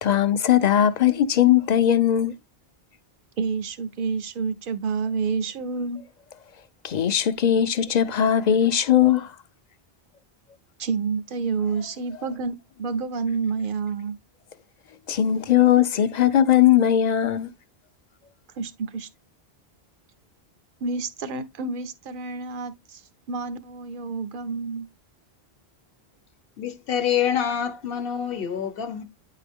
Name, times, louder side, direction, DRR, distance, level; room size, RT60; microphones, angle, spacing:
voice 1, 0.0-2.3 6.8-9.3 12.2-12.3 15.1-17.5, left 10 dB, 50° left, 0.6 m, -19 dB
voice 2, 3.4-6.0 10.8-14.2 18.6-19.1 20.8-23.0 23.3-24.9, right 5 dB, 60° right, 0.9 m, -29 dB
voice 3, 26.6-29.0, left 8 dB, 65° left, 0.9 m, -26 dB
9.1 x 3.7 x 3.5 m
omnidirectional pair, 1.0 m